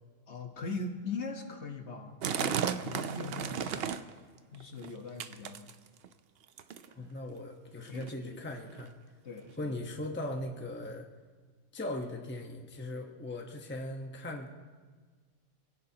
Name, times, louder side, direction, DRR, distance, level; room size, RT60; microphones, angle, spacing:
voice 1, 0.3-4.2 4.5-5.7 7.0-7.1 7.8-8.4 9.2-9.7, left 3 dB, 55° left, 3 dB, 1.5 m, -41 dB
sound 1, 2.2-4.2 4.5-4.9 5.2-6.1 6.6-6.9 7.7-7.8 8.0-8.1 8.7-8.8 9.5-9.6, right 8 dB, 55° right, 0.7 m, -34 dB
voice 2, 6.9-8.9 9.6-11.1 11.7-14.5, left 1 dB, 10° left, 2 dB, 0.9 m, -39 dB
27.5 x 16.5 x 2.9 m, 1.5 s
omnidirectional pair, 1.5 m